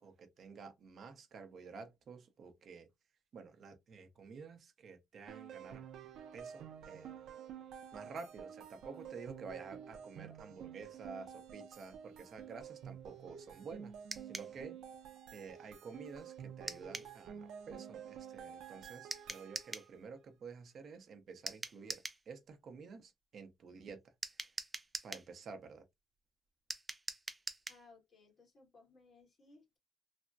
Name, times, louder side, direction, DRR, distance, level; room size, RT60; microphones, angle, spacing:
voice 1, 0.0-2.9 3.3-5.8 6.3-7.2 7.9-13.9 14.2-14.8 15.3-24.0 24.3-24.5 25.0-25.8, right 5 dB, 55° right, 0.7 m, -51 dB
sound 1, 5.3-20.0, right 8 dB, 85° right, 0.5 m, -50 dB
sound 2, 14.1-14.5 16.7-17.1 19.1-19.9 21.5-22.2 24.2-25.3 26.7-27.8, right 2 dB, 15° right, 0.4 m, -43 dB
voice 2, 27.7-29.8, left 3 dB, 40° left, 1.7 m, -62 dB
3.3 x 2.1 x 2.5 m
cardioid pair, 145°, 0 cm